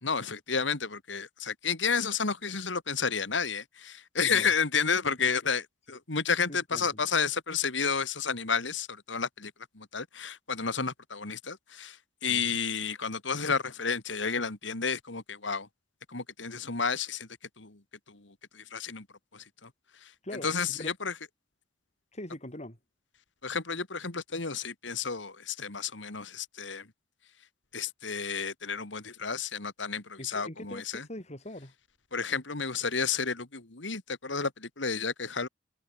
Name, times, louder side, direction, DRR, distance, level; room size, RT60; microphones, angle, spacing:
voice 1, 0.0-12.0 12.2-15.7 16.1-17.3 17.6-17.8 18.1-19.1 19.3-19.7 20.0-20.1 20.4-21.1 23.4-26.9 27.7-31.1 32.1-35.5, left 5 dB, 80° left, 2.5 m, -31 dB
voice 2, 6.5-6.9 12.3-12.6 20.2-20.9 22.1-22.8 30.2-31.7, left 1 dB, 35° left, 5.6 m, -42 dB
head